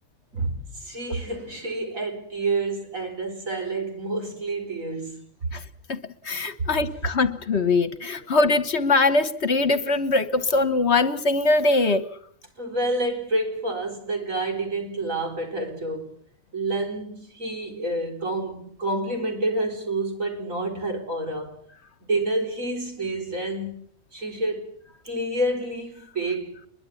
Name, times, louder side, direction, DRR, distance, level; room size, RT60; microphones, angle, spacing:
voice 1, 0.3-5.2 12.6-16.2 16.5-21.6 22.1-23.8 24.1-24.7 25.0-26.6, right 2 dB, 70° right, 4.8 m, -28 dB
voice 2, 6.2-12.1, left 3 dB, 55° left, 1.5 m, -22 dB
24.0 x 22.0 x 7.2 m
omnidirectional pair, 1.4 m